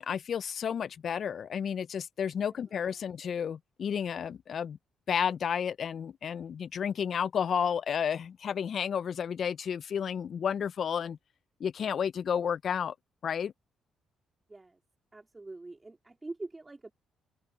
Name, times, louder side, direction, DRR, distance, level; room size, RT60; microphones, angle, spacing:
voice 1, 0.0-4.8 5.1-11.2 11.6-12.9 13.2-13.5, left 7 dB, 55° left, 0.3 m, -31 dB
voice 2, 14.5-14.8 15.1-16.9, right 2 dB, 20° right, 2.7 m, -44 dB
open air
cardioid pair, 90°, 0 cm